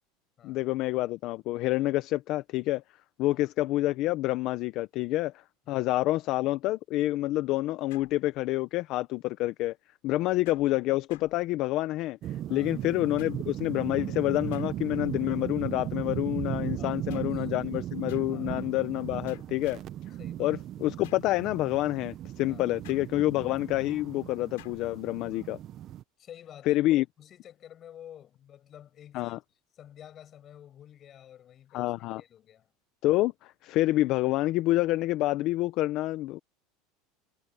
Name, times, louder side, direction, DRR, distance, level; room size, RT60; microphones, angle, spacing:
voice 1, 0.4-2.8 3.2-5.3 5.7-9.7 10.0-12.2 12.5-19.8 20.4-25.6 26.7-27.0 29.1-29.4 31.7-32.2 33.0-36.4, left 17 dB, 50° left, 0.7 m, -28 dB
sound 1, 7.9-8.8 10.5-12.0 13.2-13.7 14.5-15.1 17.1-17.5 18.1-18.5 19.3-20.1 21.0-21.4 22.8-23.5 24.6-25.0, left 20 dB, 90° left, 3.1 m, -56 dB
sound 2, 12.2-26.0, right 12 dB, 35° right, 0.7 m, -37 dB
voice 2, 12.5-12.8 16.8-17.5 18.3-18.6 19.6-19.8 20.2-20.5 22.5-22.7 25.3-25.5 26.2-29.4 29.7-32.7, left 10 dB, 30° left, 7.2 m, -51 dB
supercardioid pair, 150°, 0 cm